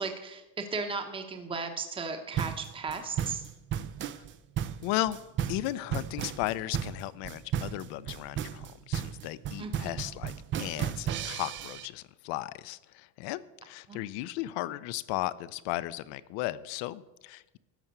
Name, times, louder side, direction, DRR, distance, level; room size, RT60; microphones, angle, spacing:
voice 1, 0.0-3.4 9.6-10.0 13.9-14.0, right 4 dB, 10° right, 6 dB, 0.9 m, -36 dB
sound 1, 2.3-11.9, right 9 dB, 30° right, 0.4 m, -34 dB
voice 2, 4.8-5.2 5.5-10.3 10.6-17.6, left 16 dB, 70° left, 17 dB, 0.7 m, -35 dB
13.0 x 5.7 x 7.9 m, 1.0 s
cardioid pair, 160°, 43 cm